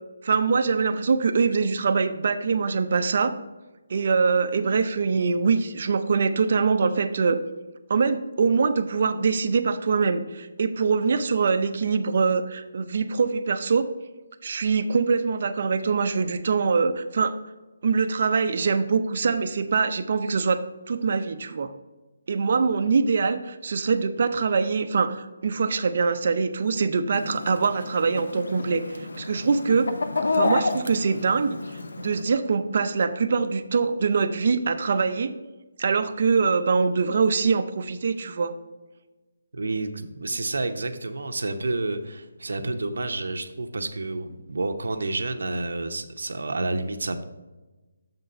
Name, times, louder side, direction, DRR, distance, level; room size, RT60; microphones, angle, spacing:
voice 1, 0.2-3.3 3.9-7.4 7.9-13.9 14.4-17.3 17.8-20.6 20.9-21.7 22.3-29.9 30.3-31.6 32.0-35.3 35.8-38.5, right 5 dB, 40° right, 9 dB, 0.5 m, -23 dB
Chicken rooster, 27.1-32.2, left 3 dB, 75° left, 0.7 m, -30 dB
voice 2, 39.5-47.2, right 2 dB, 75° right, 7 dB, 0.7 m, -29 dB
7.1 x 3.9 x 5.5 m, 1.1 s
hypercardioid pair, 175°, 0 cm